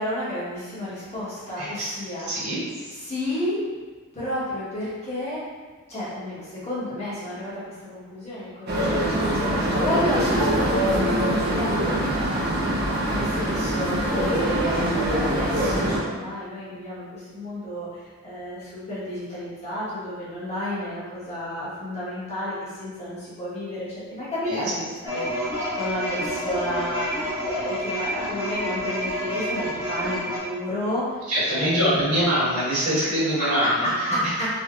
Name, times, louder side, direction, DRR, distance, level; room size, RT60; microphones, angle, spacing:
voice 1, 0.0-2.3 2.7-3.6 4.1-5.4 5.9-12.6 13.1-14.8 15.2-25.2 25.8-31.1 31.5-32.1 33.4-34.5, left 1 dB, 30° left, -10 dB, 1.2 m, -31 dB
voice 2, 1.6-1.9 2.3-2.6 24.5-24.6 31.3-33.8, equal, 85° right, -9 dB, 1.3 m, -23 dB
sound 1, 8.7-16.0, right 1 dB, 45° right, 0.5 m, -23 dB
sound 2, 25.1-30.4, equal, 15° right, 1.1 m, -28 dB
3.4 x 2.8 x 2.3 m, 1.4 s
head